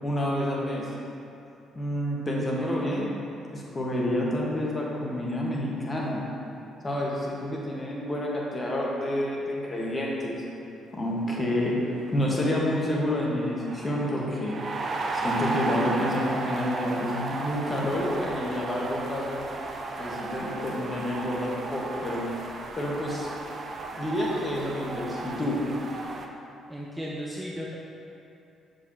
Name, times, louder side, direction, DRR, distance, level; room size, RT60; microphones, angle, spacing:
voice 1, 0.0-0.9 1.7-3.1 3.5-6.2 6.8-10.3 10.9-14.6 15.1-19.4 20.0-22.3 22.8-23.3 24.0-25.6, left 1 dB, 25° left, -4 dB, 1.4 m, -29 dB
voice 2, 2.5-2.9 26.7-27.7, equal, 5° right, -4 dB, 0.7 m, -36 dB
sound 1, 11.6-11.7 11.9-26.3, right 3 dB, 45° right, 0.5 m, -34 dB
6.7 x 5.1 x 2.9 m, 2.8 s
figure-of-eight pair, 45°, 0 cm